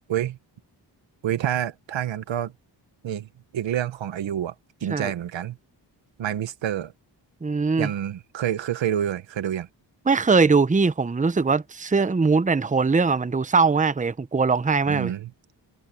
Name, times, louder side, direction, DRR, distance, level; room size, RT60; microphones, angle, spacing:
voice 1, 1.2-2.5 3.0-3.3 3.5-4.5 4.8-5.6 6.2-6.9 7.8-9.7 14.9-15.3, right 10 dB, 80° right, 1.4 m, -27 dB
voice 2, 7.4-7.9 10.1-15.1, right 4 dB, 15° right, 0.9 m, -21 dB
cardioid pair, 70°, 44 cm